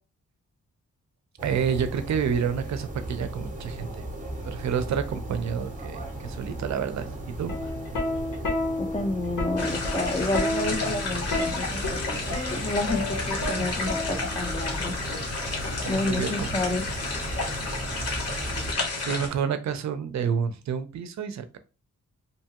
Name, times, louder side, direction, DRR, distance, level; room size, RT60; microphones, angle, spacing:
sound 1, 1.4-18.8, right 1 dB, 25° right, 0.7 m, -37 dB
voice 1, 1.4-4.0 4.4-7.5 15.6-16.6 19.0-21.6, right 7 dB, 65° right, 10 dB, 0.5 m, -29 dB
Plucked string instrument, 7.4-14.5 15.6-15.9, left 2 dB, 80° left, 1.1 m, -31 dB
voice 2, 8.8-12.2 12.5-14.9 15.9-16.8, left 2 dB, 20° left, 6 dB, 0.4 m, -30 dB
sound 2, 9.6-19.3, left 3 dB, 55° left, 0.9 m, -31 dB
2.8 x 2.3 x 2.8 m, 0.32 s
wide cardioid pair, 150°, 30 cm